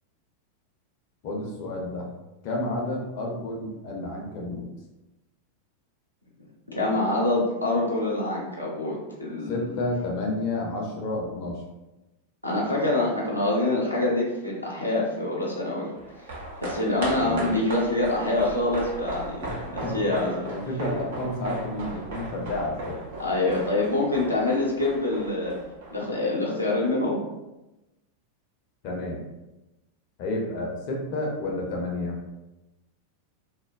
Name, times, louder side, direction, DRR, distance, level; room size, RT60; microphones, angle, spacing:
voice 1, 1.2-2.1 2.4-4.7 9.5-11.6 17.2-17.6 19.4-20.0 20.4-23.0 28.8-29.3 30.2-32.2, left 2 dB, 45° left, -1 dB, 0.5 m, -30 dB
voice 2, 6.7-9.6 12.4-15.9 16.2-16.3 16.6-20.5 23.2-25.6 25.9-27.2, left 2 dB, 90° left, -5 dB, 0.6 m, -25 dB
sound 1, 15.9-26.5 26.8-26.9, right 1 dB, 55° right, 0.6 m, -37 dB
3.1 x 2.1 x 2.2 m, 0.99 s
figure-of-eight pair, 90°, 0 cm